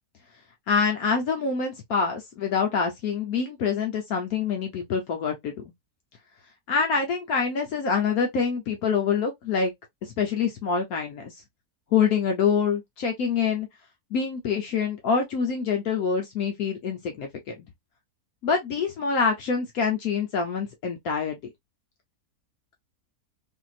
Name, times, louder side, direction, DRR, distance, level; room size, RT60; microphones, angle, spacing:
voice 1, 0.7-5.5 6.7-9.7 10.0-11.3 11.9-13.7 14.1-17.3 17.6-17.7 18.4-21.4, left 6 dB, 70° left, 1.2 m, -25 dB
3.5 x 2.7 x 2.3 m
omnidirectional pair, 1.6 m